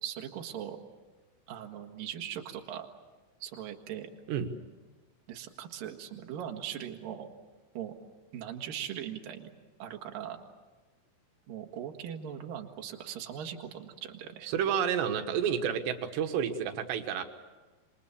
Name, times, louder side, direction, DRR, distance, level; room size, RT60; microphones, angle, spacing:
voice 1, 0.0-0.8 1.5-2.9 3.4-4.1 5.3-7.3 7.7-7.9 8.3-9.5 9.8-10.4 11.5-14.5, right 10 dB, 60° right, 4 dB, 3.1 m, -40 dB
voice 2, 14.4-17.2, right 8 dB, 80° right, 7 dB, 3.5 m, -30 dB
27.0 x 24.0 x 7.2 m, 1.2 s
omnidirectional pair, 5.0 m